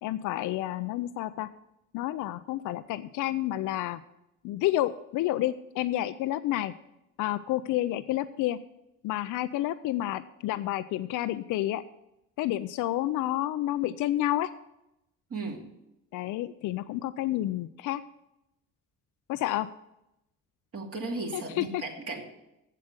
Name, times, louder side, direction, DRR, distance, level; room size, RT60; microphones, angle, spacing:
voice 1, 0.0-1.5 1.9-4.0 4.4-6.7 7.2-8.6 9.0-11.8 12.4-14.5 16.1-18.0 19.3-19.7 21.3-21.8, left 14 dB, 85° left, 13 dB, 0.5 m, -30 dB
voice 2, 15.3-15.6 20.7-22.2, right 3 dB, 50° right, 0 dB, 2.5 m, -35 dB
7.6 x 7.5 x 8.0 m, 0.88 s
cardioid pair, 90°, 30 cm